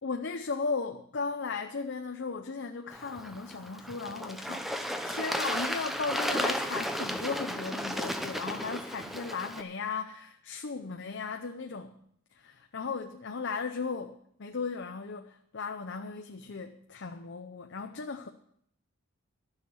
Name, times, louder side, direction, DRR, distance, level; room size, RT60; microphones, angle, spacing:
voice 1, 0.0-12.0 12.3-18.3, left 4 dB, 55° left, 5 dB, 0.7 m, -36 dB
Bird / Water, 2.9-9.6, equal, ahead, 0.7 m, -34 dB
12.5 x 6.6 x 9.1 m, 0.68 s
head